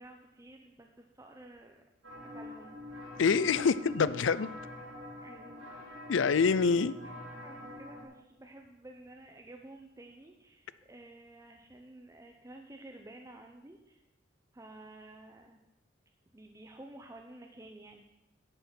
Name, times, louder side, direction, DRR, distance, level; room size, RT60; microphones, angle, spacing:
voice 1, 0.0-1.8 2.2-2.8 5.2-5.7 6.5-7.1 7.4-14.0 14.5-15.6 16.3-18.0, right 1 dB, 15° right, 3 dB, 0.7 m, -52 dB
sound 1, 2.0-8.0, left 2 dB, 85° right, 3.5 m, -45 dB
voice 2, 3.2-4.5 6.1-6.9, left 5 dB, 80° left, 17 dB, 0.5 m, -26 dB
10.5 x 8.3 x 6.1 m, 0.92 s
head